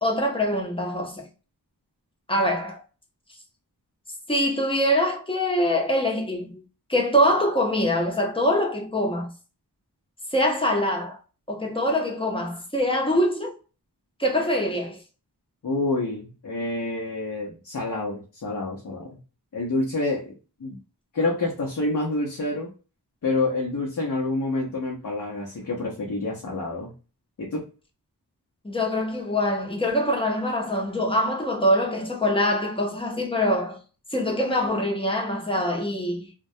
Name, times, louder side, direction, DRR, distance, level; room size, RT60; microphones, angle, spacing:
voice 1, 0.0-1.3 2.3-2.8 4.3-6.6 6.9-9.3 10.3-11.2 11.5-13.5 14.2-15.0 28.6-33.8 34.1-36.3, equal, 15° left, 0.6 m, -24 dB
voice 2, 15.6-19.2 19.5-20.3 20.6-20.8 21.1-22.7 23.2-26.9 27.4-27.7, left 2 dB, 55° left, 0.6 m, -28 dB
2.2 x 2.1 x 2.6 m
wide cardioid pair, 60°, 40 cm